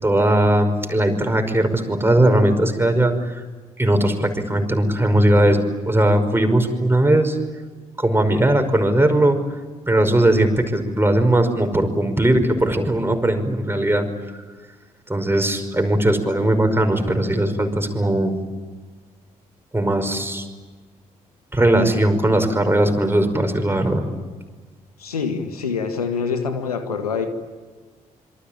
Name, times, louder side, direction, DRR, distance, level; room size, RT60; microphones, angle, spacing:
voice 1, 0.0-3.4 3.8-7.4 8.0-9.4 9.9-14.1 15.1-18.3 19.7-20.4 21.5-24.1, right 1 dB, 10° right, 6 dB, 5.4 m, -19 dB
voice 2, 25.0-27.3, left 5 dB, 85° left, 9 dB, 1.8 m, -25 dB
27.0 x 24.5 x 8.9 m, 1.4 s
figure-of-eight pair, 40°, 19 cm